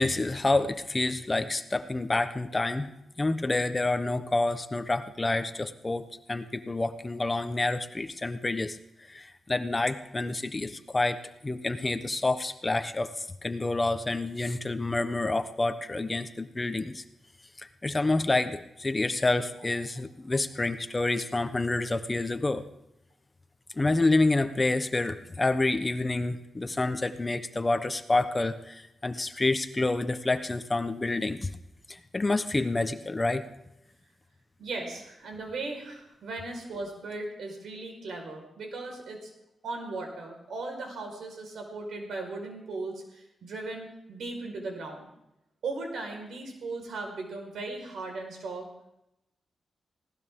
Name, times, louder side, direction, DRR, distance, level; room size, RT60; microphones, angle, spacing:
voice 1, 0.0-2.9 3.2-8.8 9.1-17.0 17.6-22.6 23.7-31.5 31.9-33.4, left 2 dB, 25° left, 9 dB, 1.0 m, -28 dB
voice 2, 34.6-39.3 39.6-45.1 45.6-48.7, right 3 dB, 80° right, 2 dB, 4.9 m, -37 dB
19.0 x 18.0 x 3.7 m, 0.85 s
cardioid pair, 105°, 0 cm